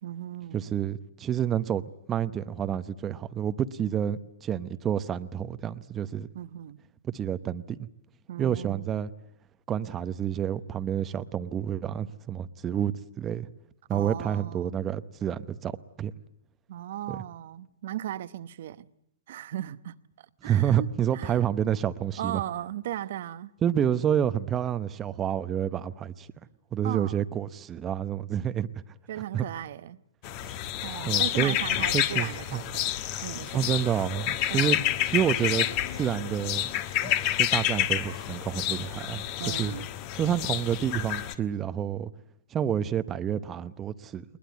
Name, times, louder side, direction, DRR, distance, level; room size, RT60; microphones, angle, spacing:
voice 1, 0.0-0.7 6.3-6.8 8.3-8.9 13.9-14.7 16.7-18.9 19.3-19.9 20.4-21.4 22.2-23.5 26.8-27.2 29.1-30.0 30.8-32.9 33.2-33.7 34.5-34.8 39.4-39.9, right 12 dB, 60° right, 0.9 m, -37 dB
voice 2, 0.5-6.3 7.0-7.9 8.4-9.1 9.7-13.5 13.9-15.7 16.0-16.1 17.1-17.2 20.4-22.4 23.6-26.3 26.7-28.7 29.3-29.4 30.4-30.5 31.0-31.5 31.9-32.6 33.5-34.8 35.1-35.7 35.9-36.7 37.4-39.2 39.6-39.7 40.1-42.1 42.5-44.2, right 9 dB, 20° right, 0.9 m, -28 dB
sound 1, 30.2-41.3, left 12 dB, 40° left, 1.4 m, -29 dB
21.0 x 20.5 x 9.4 m
hypercardioid pair, 135°, 0 cm